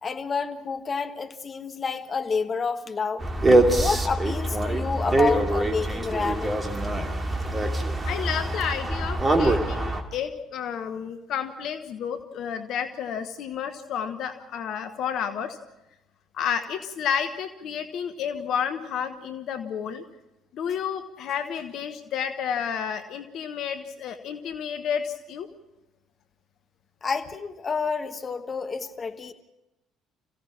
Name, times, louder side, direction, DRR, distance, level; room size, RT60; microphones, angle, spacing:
voice 1, 0.0-3.3 3.8-6.6 27.0-29.3, left 5 dB, 35° left, 1.4 m, -29 dB
sound 1, 3.2-10.0, right 1 dB, 25° right, 2.5 m, -24 dB
voice 2, 8.0-15.6 16.3-20.0 20.5-25.5, left 8 dB, 55° left, 1.1 m, -31 dB
26.5 x 16.5 x 6.0 m
figure-of-eight pair, 50°, 0 cm